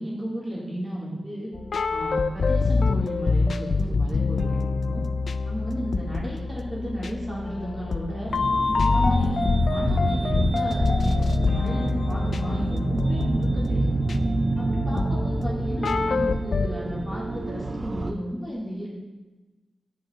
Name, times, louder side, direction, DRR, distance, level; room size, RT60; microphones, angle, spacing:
voice 1, 0.0-1.5 1.9-5.1 5.4-8.3 8.6-13.9 14.6-18.9, equal, 10° right, -7 dB, 3.7 m, -33 dB
sound 1, 1.5-16.7, left 4 dB, 55° left, 0.4 m, -26 dB
sound 2, 8.3-18.1, right 2 dB, 35° right, 0.6 m, -27 dB
17.5 x 5.8 x 3.9 m, 1.2 s
wide cardioid pair, 145°, 0 cm